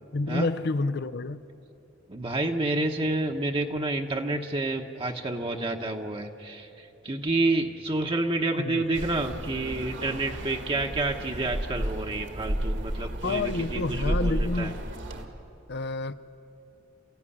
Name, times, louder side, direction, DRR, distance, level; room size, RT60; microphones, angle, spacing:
voice 1, 0.1-1.4 8.6-8.9 13.0-14.8 15.7-16.2, left 3 dB, 55° left, 0.7 m, -29 dB
voice 2, 2.1-14.7, right 2 dB, 25° right, 1.1 m, -29 dB
sound 1, 8.9-15.3, right 1 dB, 60° right, 2.0 m, -32 dB
29.5 x 15.0 x 10.0 m
head